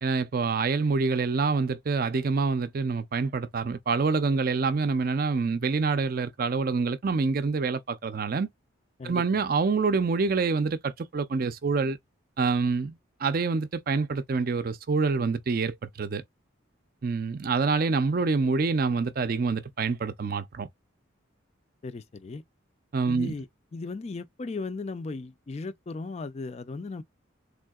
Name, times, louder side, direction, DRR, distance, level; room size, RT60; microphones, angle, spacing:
voice 1, 0.0-8.5 9.0-12.0 12.4-16.2 17.0-20.7 22.9-23.3, right 4 dB, 45° right, 0.4 m, -26 dB
voice 2, 9.0-9.4 21.8-22.4 23.1-23.5 23.7-27.0, left 3 dB, 30° left, 0.4 m, -36 dB
3.6 x 2.7 x 2.3 m
head